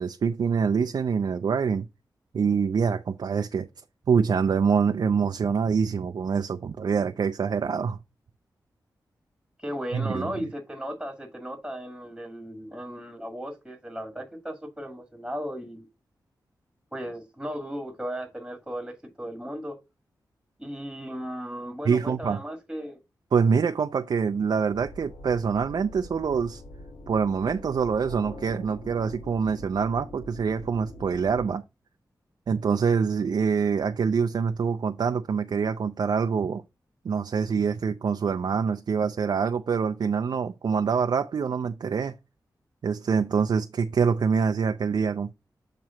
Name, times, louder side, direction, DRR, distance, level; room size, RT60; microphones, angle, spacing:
voice 1, 0.0-1.9 2.3-3.7 4.1-8.0 9.9-10.3 21.8-22.4 23.3-26.6 27.1-31.6 32.5-36.6 37.0-42.1 42.8-45.3, right 6 dB, 70° right, 0.5 m, -25 dB
voice 2, 9.6-15.9 16.9-19.8 20.6-23.0, equal, 5° right, 1.7 m, -36 dB
sound 1, 24.7-31.5, left 1 dB, 80° left, 1.4 m, -43 dB
7.4 x 3.1 x 5.7 m
wide cardioid pair, 75°, 7 cm